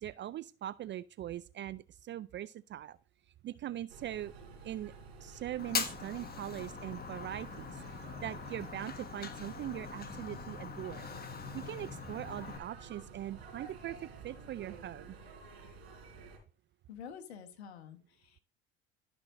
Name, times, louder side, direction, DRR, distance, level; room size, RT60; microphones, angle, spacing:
voice 1, 0.0-3.0 3.4-4.3 4.6-4.9 5.2-7.8 8.2-11.0 11.5-15.1, right 12 dB, 35° right, 0.4 m, -41 dB
sound 1, 3.9-16.4, right 4 dB, 90° right, 4.0 m, -52 dB
Fire, 5.6-12.6, left 6 dB, 30° left, 1.5 m, -42 dB
voice 2, 16.9-18.4, left 7 dB, 90° left, 1.4 m, -48 dB
14.0 x 6.0 x 2.6 m
hypercardioid pair, 75°, 31 cm